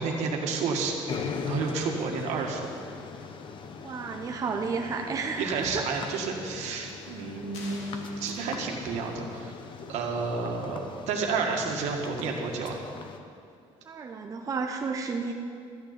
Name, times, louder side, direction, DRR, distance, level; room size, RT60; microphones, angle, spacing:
voice 1, 0.0-2.6 5.4-9.5 9.9-10.8 11.1-12.8, right 4 dB, 80° right, 1 dB, 1.9 m, -31 dB
sound 1, 1.1-13.2, left 5 dB, 45° left, 1.0 m, -40 dB
voice 2, 3.8-5.9 13.9-15.3, right 4 dB, 30° right, 3 dB, 0.8 m, -32 dB
sound 2, 7.5-9.1, left 2 dB, 70° left, 2.3 m, -48 dB
13.5 x 6.7 x 8.9 m, 2.4 s
cardioid pair, 135°, 12 cm